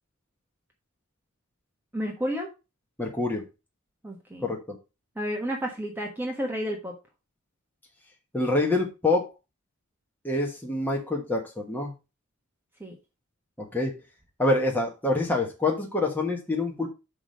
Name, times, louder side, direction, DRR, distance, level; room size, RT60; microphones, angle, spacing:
voice 1, 1.9-2.5 4.0-4.5 5.2-6.9 12.8-12.9, equal, 10° right, 0 dB, 1.3 m, -31 dB
voice 2, 3.0-3.4 4.4-4.6 8.3-9.3 10.2-11.9 13.7-13.9 14.4-16.9, left 2 dB, 10° left, -1 dB, 1.3 m, -26 dB
6.1 x 5.0 x 5.1 m, 0.28 s
head